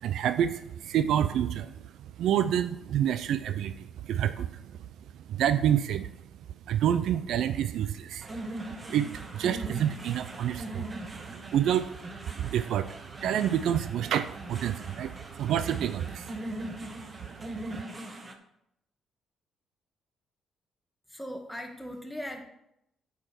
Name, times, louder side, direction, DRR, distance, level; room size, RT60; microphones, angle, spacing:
voice 1, 0.0-1.8 2.2-4.6 5.3-6.1 6.7-8.3 8.9-10.9 11.2-11.9 12.4-12.9 13.2-16.3 16.7-16.8 17.7-17.8, right 10 dB, 65° right, 12 dB, 0.4 m, -28 dB
sound 1, 8.2-18.3, right 1 dB, 30° right, 1.4 m, -41 dB
voice 2, 21.1-22.4, equal, ahead, 2 dB, 2.0 m, -38 dB
8.3 x 7.1 x 4.6 m, 0.79 s
hypercardioid pair, 45°, 0 cm